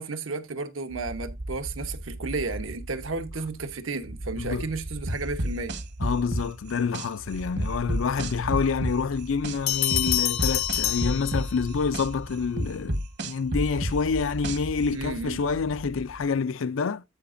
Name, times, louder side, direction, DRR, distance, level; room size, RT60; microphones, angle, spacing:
voice 1, 0.0-5.7 14.9-15.4, right 3 dB, 75° right, 1.1 m, -33 dB
sound 1, 0.9-16.4, right 1 dB, 25° right, 0.5 m, -39 dB
voice 2, 4.4-4.7 6.0-13.0 13.2-17.0, left 5 dB, 70° left, 0.5 m, -27 dB
sound 2, 5.1-7.1 7.6-9.6 9.9-12.1 12.6-14.8, right 1 dB, 60° right, 1.3 m, -29 dB
Bell, 9.7-11.9, left 13 dB, 85° left, 1.2 m, -27 dB
14.0 x 5.0 x 2.6 m
head